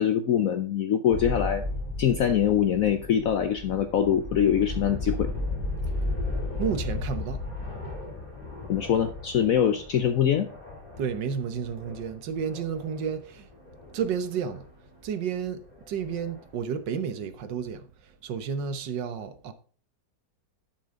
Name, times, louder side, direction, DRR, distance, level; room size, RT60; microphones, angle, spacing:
voice 1, 0.0-1.6 2.0-5.3 8.7-10.5, left 9 dB, 60° left, 1.0 m, -23 dB
sound 1, 1.1-14.7 15.0-15.1 15.6-16.4, left 2 dB, 30° left, 3.6 m, -35 dB
voice 2, 6.6-7.4 11.0-13.5 13.9-14.6 15.0-19.5, right 7 dB, 85° right, 1.7 m, -31 dB
11.5 x 6.2 x 3.7 m
omnidirectional pair, 1.9 m